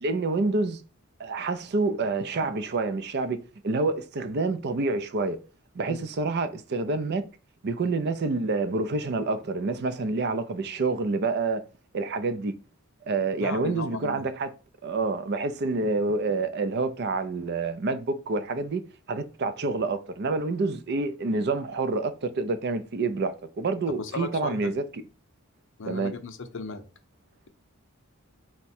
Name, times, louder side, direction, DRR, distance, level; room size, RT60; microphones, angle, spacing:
voice 1, 0.0-0.8 1.2-5.4 5.7-7.2 7.6-11.6 11.9-12.5 13.1-14.5 14.8-18.8 19.1-24.8 25.8-26.1, right 3 dB, 50° right, 0.4 m, -28 dB
voice 2, 13.4-14.2 24.0-24.8 25.8-26.9, left 4 dB, 60° left, 0.6 m, -36 dB
4.6 x 2.1 x 4.2 m
head